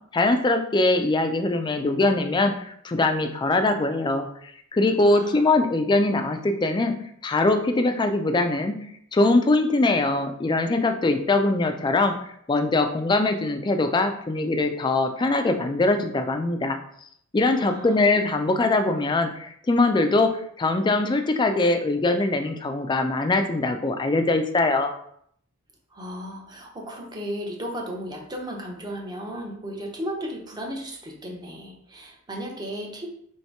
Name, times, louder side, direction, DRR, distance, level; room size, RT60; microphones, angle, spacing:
voice 1, 0.1-6.9 7.2-8.8 9.1-12.1 12.5-16.8 17.3-20.3 20.6-24.9, left 2 dB, 20° left, 7 dB, 0.3 m, -22 dB
voice 2, 5.0-5.7 17.5-18.0 25.9-33.1, equal, 20° right, 0 dB, 0.7 m, -35 dB
3.1 x 2.8 x 4.5 m, 0.68 s
head